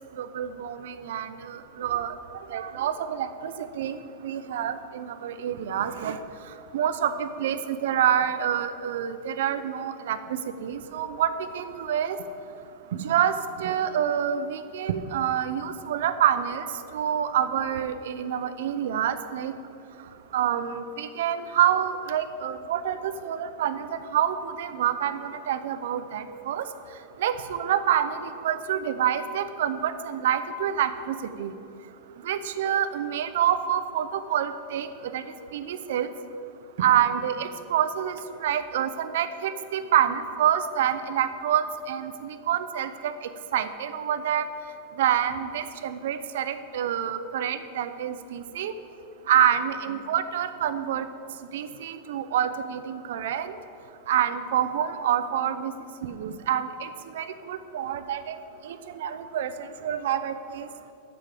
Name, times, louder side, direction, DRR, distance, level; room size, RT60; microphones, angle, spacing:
voice 1, 0.2-2.1 2.5-4.0 4.2-6.2 6.7-10.2 10.6-12.2 12.9-13.3 13.6-16.6 16.9-19.5 20.3-26.7 27.2-31.5 32.2-34.9 35.1-35.2 35.5-36.1 36.8-38.2 38.4-43.1 43.5-44.5 45.0-48.7 49.3-51.1 51.5-53.5 54.1-55.7 56.0-56.9 57.2-58.4 58.6-58.8 59.0-60.7, right 10 dB, 75° right, 12 dB, 0.7 m, -27 dB
8.3 x 7.0 x 7.6 m, 2.8 s
supercardioid pair, 165°, 0 cm